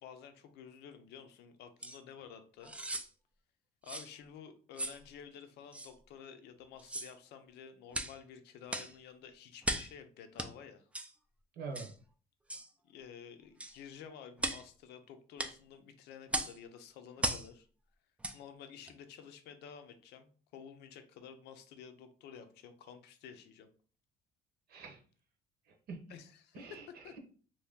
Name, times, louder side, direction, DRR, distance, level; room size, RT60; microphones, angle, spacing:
voice 1, 0.0-2.7 3.8-10.9 12.8-17.7 18.3-23.7 26.1-27.2, left 7 dB, 80° left, 8 dB, 0.6 m, -52 dB
sound 1, 1.8-2.0 2.6-3.1 3.9-4.1 4.8-5.0 5.7-5.9 6.8-7.1 7.9-8.2 8.7-8.9 9.6-9.9 10.4-10.5 10.9-11.1 11.7-11.9 12.5-12.7 13.6-13.8 14.4-14.7 15.4-15.6 16.3-16.6 17.2-17.5 18.2-18.4 18.9-19.0, right 1 dB, 5° right, 0.4 m, -37 dB
voice 2, 11.5-11.9 24.7-25.0 25.7-26.0 26.5-27.2, right 4 dB, 65° right, 4 dB, 0.9 m, -45 dB
2.9 x 2.6 x 3.5 m, 0.41 s
cardioid pair, 110°, 17 cm